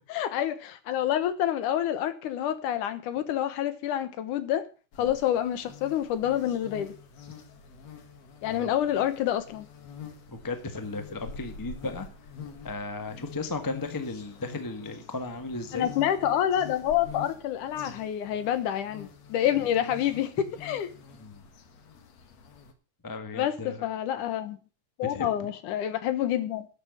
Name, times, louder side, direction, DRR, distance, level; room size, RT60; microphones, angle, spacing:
voice 1, 0.1-4.7 5.0-6.9 8.4-9.7 15.7-20.9 23.3-24.6 25.0-26.7, left 11 dB, 80° left, 2.7 m, -28 dB
sound 1, 4.9-22.7, left 6 dB, 60° left, 2.7 m, -46 dB
voice 2, 10.3-12.1 12.6-15.9 21.2-21.4 23.0-23.8 25.1-25.5, left 3 dB, 20° left, 0.5 m, -35 dB
12.5 x 6.6 x 7.8 m
omnidirectional pair, 3.6 m